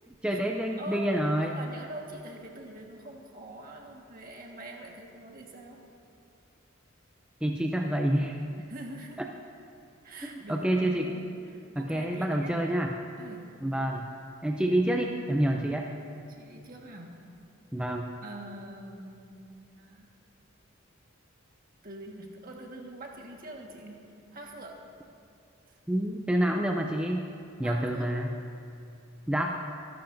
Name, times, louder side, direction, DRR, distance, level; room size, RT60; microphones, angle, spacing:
voice 1, 0.1-1.6 7.4-8.4 10.5-11.1 11.8-12.9 13.6-14.1 14.4-15.9 17.7-18.1 25.9-27.3 27.6-28.3 29.3-29.6, right 1 dB, 5° right, 1 dB, 0.5 m, -28 dB
voice 2, 0.8-5.8 8.7-9.2 10.0-12.7 13.2-13.6 16.3-17.3 18.2-20.1 21.8-24.9 25.7-25.8 27.6-28.1, right 1 dB, 45° right, 0 dB, 1.6 m, -44 dB
24.5 x 11.5 x 2.6 m, 2.5 s
head